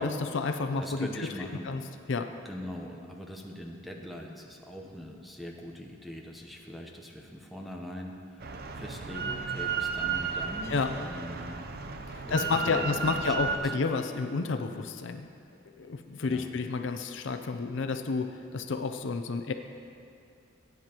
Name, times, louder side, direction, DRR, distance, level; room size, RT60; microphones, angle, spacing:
voice 1, 0.0-1.3 1.6-1.8 2.1-2.3 10.7-10.9 12.1-15.3 15.8-19.5, left 4 dB, 60° left, 7 dB, 0.5 m, -30 dB
voice 2, 0.8-1.7 2.4-8.4 8.7-11.7 12.2-13.7 16.3-16.5, equal, ahead, 1 dB, 0.8 m, -42 dB
Drill, 8.4-13.6, right 5 dB, 45° right, 0.6 m, -33 dB
17.0 x 9.4 x 2.9 m, 2.5 s
head